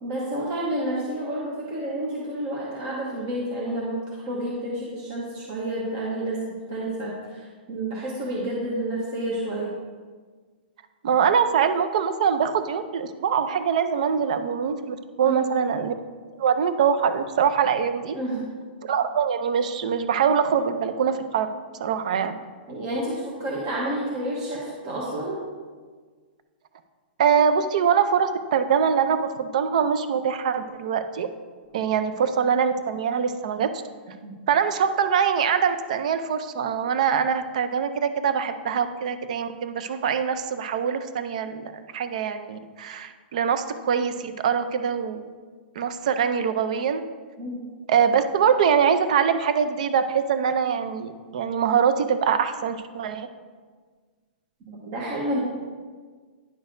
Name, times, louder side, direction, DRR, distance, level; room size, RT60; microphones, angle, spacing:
voice 1, 0.0-9.7 15.2-15.5 18.1-18.5 22.7-25.4 34.2-34.3 47.4-47.6 54.6-55.4, right 1 dB, 25° right, -4 dB, 0.9 m, -30 dB
voice 2, 11.0-15.9 16.4-18.2 18.8-22.3 27.2-31.3 31.7-33.7 34.5-45.2 45.8-47.0 47.9-53.3, right 7 dB, 40° right, 10 dB, 0.5 m, -23 dB
10.0 x 6.1 x 2.6 m, 1.5 s
hypercardioid pair, 180°, 6 cm